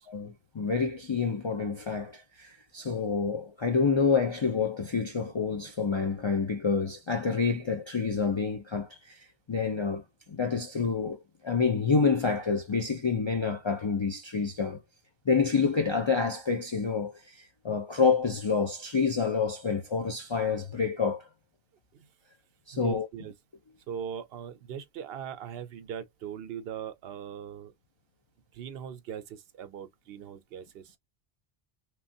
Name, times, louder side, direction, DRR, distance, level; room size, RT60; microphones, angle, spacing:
voice 1, 0.1-10.0 10.3-14.8 15.3-21.3 22.7-23.1, left 5 dB, 50° left, 0.3 m, -28 dB
voice 2, 22.7-23.3 23.9-27.7 28.5-31.0, right 8 dB, 75° right, 0.8 m, -40 dB
3.0 x 2.3 x 2.6 m
omnidirectional pair, 1.1 m